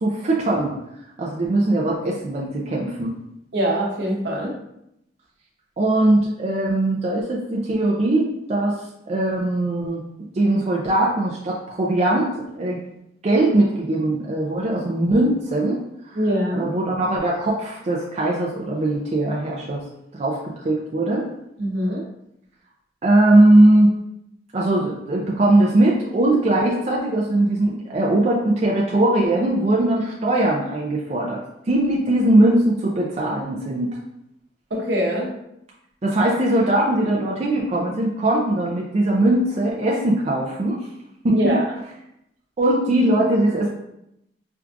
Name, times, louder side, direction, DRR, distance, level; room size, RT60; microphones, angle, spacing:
voice 1, 0.0-0.8 1.2-3.1 5.8-10.0 10.3-12.8 13.2-16.2 16.5-19.8 20.1-21.3 23.0-23.9 24.5-33.9 36.0-40.9 41.2-41.4 42.6-43.7, right 1 dB, 40° right, -3 dB, 0.4 m, -20 dB
voice 2, 3.5-4.5 16.1-16.7 21.6-22.0 34.7-35.3 41.3-41.6, equal, 70° right, -2 dB, 0.9 m, -23 dB
4.5 x 2.4 x 2.5 m, 0.81 s
head